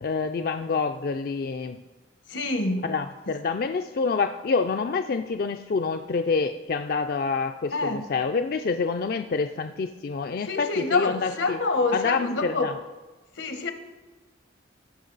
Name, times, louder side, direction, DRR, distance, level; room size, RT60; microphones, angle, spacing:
voice 1, 0.0-1.8 2.8-11.6 11.9-12.7, left 4 dB, 50° left, 6 dB, 0.4 m, -27 dB
voice 2, 2.3-2.9 7.7-8.0 10.4-12.7 13.4-13.7, left 3 dB, 85° left, 8 dB, 1.1 m, -27 dB
16.0 x 6.1 x 4.0 m, 1.2 s
head